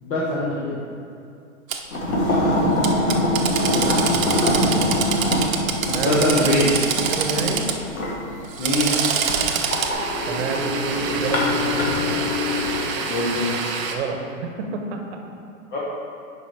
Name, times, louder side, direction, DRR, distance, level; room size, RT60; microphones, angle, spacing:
voice 1, 0.0-0.8 6.0-6.7 8.6-9.0 13.1-13.5 15.7-15.8, left 1 dB, 30° left, -7 dB, 1.2 m, -22 dB
Drill, 1.7-1.8 2.8-7.8 8.4-9.9, right 7 dB, 70° right, 0.9 m, -25 dB
sound 1, 1.9-12.8, left 1 dB, 80° left, 1.9 m, -24 dB
voice 2, 7.0-7.7 10.3-12.0 13.9-15.2, right 4 dB, 55° right, 3 dB, 1.1 m, -29 dB
sound 2, 8.8-14.0, right 5 dB, 25° right, 0.5 m, -30 dB
7.0 x 5.1 x 5.0 m, 2.5 s
hypercardioid pair, 135°, 41 cm